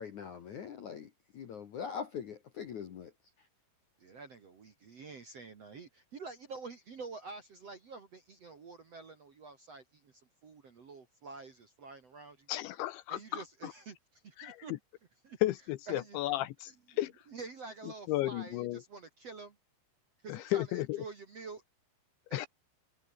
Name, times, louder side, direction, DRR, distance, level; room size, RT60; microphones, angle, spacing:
voice 1, 0.0-3.1, left 7 dB, 60° left, 2.1 m, -42 dB
voice 2, 4.0-12.5 13.1-14.8 15.2-15.4 15.9-16.2 16.7-19.6 20.2-21.6 22.3-22.5, right 4 dB, 45° right, 2.2 m, -48 dB
voice 3, 12.5-13.2 13.6-13.7 14.4-14.6 15.4-16.7 17.0-17.1 18.1-18.8 20.3-21.0 22.3-22.5, left 16 dB, 80° left, 3.0 m, -33 dB
omnidirectional pair, 5.7 m